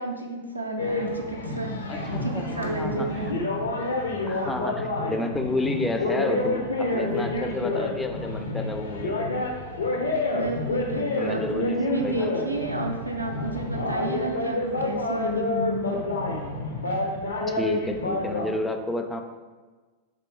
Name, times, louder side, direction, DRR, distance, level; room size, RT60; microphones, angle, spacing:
voice 1, 0.0-1.8 2.2-3.4 4.3-4.5 6.8-7.3 10.3-16.0, right 2 dB, 85° right, 2 dB, 0.4 m, -31 dB
sound 1, 0.8-18.4, left 2 dB, 70° left, 0.5 m, -28 dB
voice 2, 1.9-3.1 4.2-9.5 11.2-12.3 17.6-19.2, left 2 dB, 10° left, 5 dB, 0.3 m, -31 dB
4.1 x 3.0 x 3.0 m, 1.4 s
figure-of-eight pair, 90°, 0 cm